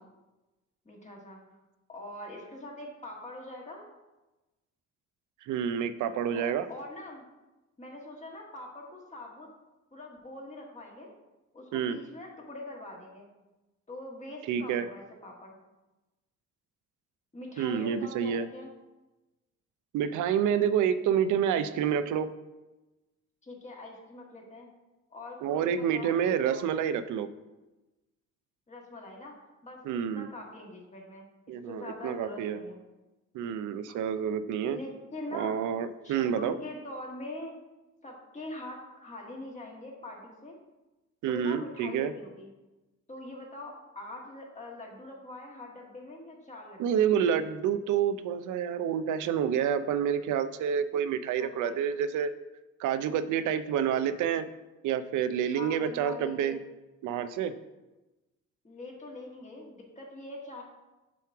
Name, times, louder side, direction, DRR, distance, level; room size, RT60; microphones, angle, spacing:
voice 1, 0.9-1.4 1.9-3.8 6.3-7.2 7.8-9.5 9.9-11.1 11.5-13.3 13.9-15.6 17.3-18.7 23.4-24.7 25.1-26.7 28.7-32.8 33.9-34.0 34.7-35.6 36.0-37.5 38.0-40.6 41.3-42.5 43.1-47.0 51.4-51.8 55.5-56.6 58.6-60.6, left 1 dB, 25° left, -1 dB, 1.7 m, -43 dB
voice 2, 5.4-6.7 11.7-12.0 14.5-14.9 17.6-18.5 19.9-22.3 25.4-27.3 29.9-30.3 31.5-32.6 33.3-34.8 35.3-36.5 41.2-42.1 46.8-52.3 52.8-54.5 54.8-56.6 57.0-57.5, right 8 dB, 80° right, 12 dB, 0.5 m, -28 dB
7.0 x 3.1 x 5.8 m, 1.1 s
cardioid pair, 90°, 30 cm